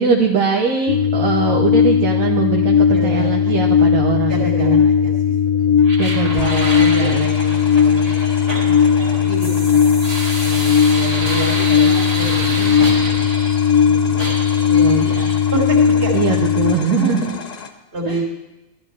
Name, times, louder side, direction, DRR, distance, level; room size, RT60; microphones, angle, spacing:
voice 1, 0.0-4.8 6.0-6.6 7.0-7.3 14.8-15.5 16.1-17.4 18.1-18.2, right 5 dB, 75° right, 1 dB, 1.2 m, -21 dB
sound 1, 0.9-16.7, left 7 dB, 85° left, 1.1 m, -16 dB
voice 2, 2.9-3.6 4.3-5.8 6.4-8.1 8.6-10.0 10.4-13.3 13.8-14.4 14.7-14.9 15.5-16.4 16.9-17.4 17.9-18.2, right 2 dB, 45° right, -3 dB, 2.5 m, -28 dB
sound 2, 5.8-13.8 14.2-15.4, right 1 dB, 25° right, 1.9 m, -28 dB
sound 3, 6.3-17.7, left 6 dB, 55° left, 0.4 m, -35 dB
12.0 x 12.0 x 3.2 m, 0.99 s
omnidirectional pair, 1.5 m